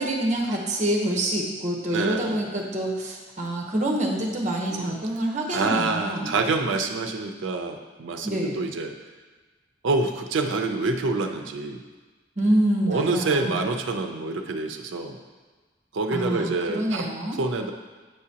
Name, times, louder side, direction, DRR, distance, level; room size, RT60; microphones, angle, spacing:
voice 1, 0.0-6.3 8.2-8.6 12.4-13.7 16.1-17.4, right 1 dB, 40° right, -1 dB, 0.9 m, -26 dB
voice 2, 1.9-2.4 4.7-4.9 5.5-8.9 9.8-11.8 12.9-15.2 15.9-17.7, right 3 dB, 80° right, 4 dB, 0.5 m, -27 dB
8.0 x 4.9 x 2.8 m, 1.3 s
head